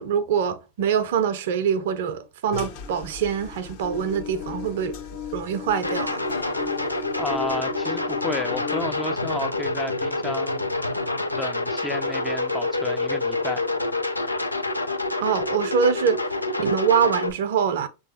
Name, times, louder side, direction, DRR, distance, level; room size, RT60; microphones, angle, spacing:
voice 1, 0.0-5.0 5.3-6.2 15.2-16.2 16.6-17.9, right 7 dB, 55° right, 0.6 m, -24 dB
sound 1, 2.5-7.6, left 5 dB, 45° left, 1.0 m, -42 dB
sound 2, 3.8-8.8, left 9 dB, 65° left, 1.6 m, -36 dB
sound 3, 5.8-17.3, left 2 dB, 85° left, 0.5 m, -27 dB
voice 2, 7.1-10.7 11.3-13.7, left 2 dB, 10° left, 0.5 m, -32 dB
6.5 x 2.9 x 2.7 m
figure-of-eight pair, 90°, 0 cm